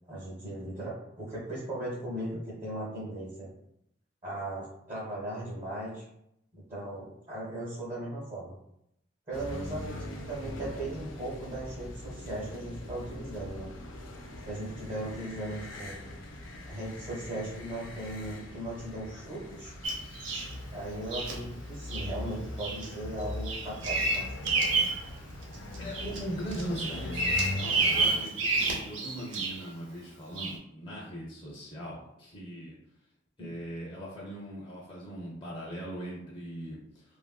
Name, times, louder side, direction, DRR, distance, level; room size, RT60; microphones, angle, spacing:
voice 1, 0.1-3.5 4.2-6.1 6.5-8.5 9.3-13.7 14.4-16.0 16.7-19.7 20.7-24.2 33.4-33.5, right 1 dB, 35° right, -7 dB, 0.7 m, -38 dB
sound 1, 9.3-28.1, left 1 dB, 85° left, 0.5 m, -41 dB
Bird vocalization bird call bird song, 19.8-20.5 21.1-21.4 21.9-22.1 22.6-22.9 23.2-25.0 25.4-26.2 26.5-29.7 30.4-30.6, right 3 dB, 80° right, 0.6 m, -29 dB
voice 2, 25.8-32.8 33.4-37.0, equal, 25° left, -5 dB, 0.5 m, -40 dB
2.9 x 2.5 x 2.2 m, 0.79 s
head